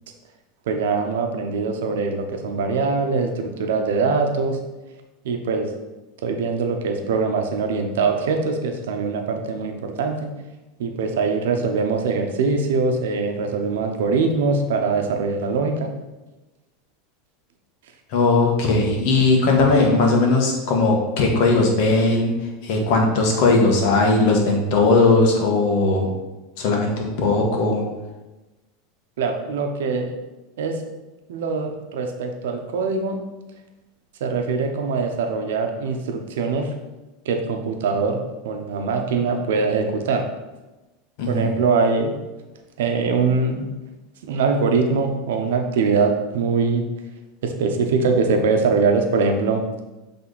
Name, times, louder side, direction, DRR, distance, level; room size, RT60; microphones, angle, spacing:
voice 1, 0.7-4.6 5.2-5.7 6.2-10.3 10.8-15.9 29.2-30.1 30.6-30.8 31.3-33.2 34.2-36.7 37.2-38.2 38.4-40.2 41.3-42.1 42.8-43.7 44.2-46.8 47.4-49.6, right 4 dB, 90° right, 4 dB, 0.9 m, -22 dB
voice 2, 18.1-22.3 22.6-26.1 26.6-27.8 41.2-41.5, left 3 dB, 65° left, 0 dB, 1.6 m, -18 dB
7.7 x 3.6 x 4.1 m, 1.1 s
supercardioid pair, 140°, 0 cm